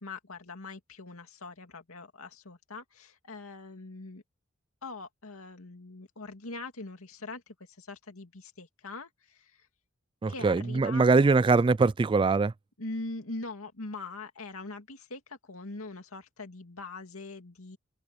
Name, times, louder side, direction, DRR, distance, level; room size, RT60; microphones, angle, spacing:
voice 1, 0.0-4.2 4.8-9.7 10.3-11.4 12.8-17.8, left 2 dB, 90° left, 2.4 m, -42 dB
voice 2, 10.2-12.5, right 4 dB, 25° right, 0.3 m, -22 dB
head